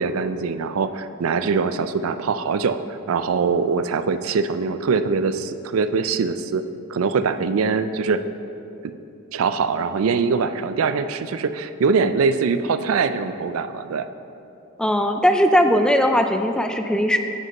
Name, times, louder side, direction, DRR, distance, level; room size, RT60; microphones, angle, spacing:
voice 1, 0.0-6.6 6.9-8.2 8.8-8.9 9.3-14.1, right 5 dB, 75° right, 11 dB, 0.4 m, -23 dB
voice 2, 14.8-17.2, equal, 5° left, 6 dB, 0.4 m, -19 dB
9.7 x 5.2 x 5.4 m, 2.8 s
head